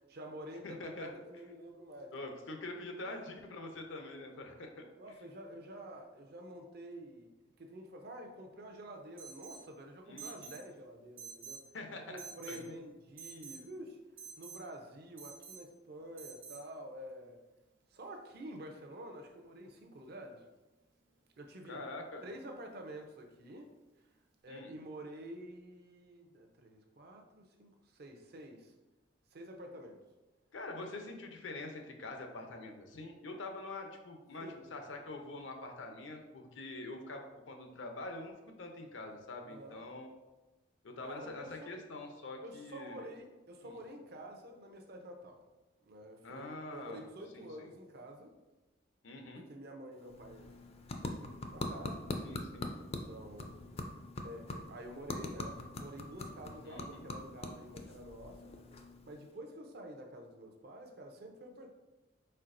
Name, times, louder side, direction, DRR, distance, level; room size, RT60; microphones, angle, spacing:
voice 1, 0.0-2.1 3.0-3.2 5.0-11.6 12.1-14.0 14.4-17.4 17.9-20.4 21.4-21.8 22.2-23.7 24.4-28.7 29.3-30.0 30.8-30.9 34.4-35.1 39.4-39.8 41.0-41.7 42.4-45.4 45.9-48.3 49.3-50.5 51.0-52.0 52.8-53.5 54.2-58.5 59.1-61.7, right 1 dB, 55° right, 3 dB, 0.6 m, -49 dB
voice 2, 0.6-1.1 2.1-4.8 10.1-10.5 11.7-12.2 12.5-12.8 21.7-22.2 24.5-24.7 30.5-40.1 40.8-43.0 43.6-43.8 46.2-47.0 47.3-47.7 49.0-49.4 52.2-52.7 56.7-57.0, left 2 dB, 80° left, 4 dB, 0.6 m, -45 dB
Alarm, 9.2-9.7 10.2-10.6 11.2-11.7 12.2-12.6 13.2-13.6 14.2-14.6 15.2-15.6 16.2-16.6, right 5 dB, 85° right, 0.9 m, -48 dB
sound 1, 49.9-59.4, left 2 dB, 35° left, 0.4 m, -43 dB
4.4 x 4.1 x 2.5 m, 1.1 s
head